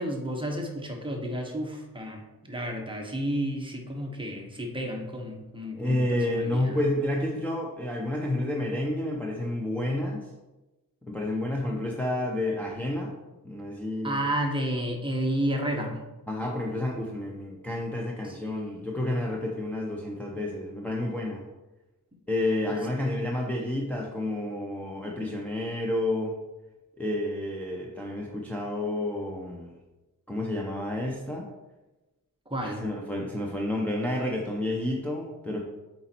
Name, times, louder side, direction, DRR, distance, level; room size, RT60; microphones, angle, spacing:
voice 1, 0.0-6.8 14.0-16.0 18.2-18.7 32.5-32.8, equal, 15° right, 1 dB, 1.0 m, -31 dB
voice 2, 5.8-10.3 11.1-13.1 13.4-14.2 16.3-21.4 22.3-26.3 27.0-29.7 30.3-31.5 32.6-35.6, left 1 dB, 5° left, -3 dB, 0.7 m, -30 dB
8.2 x 4.1 x 4.4 m, 1.1 s
wide cardioid pair, 155°, 36 cm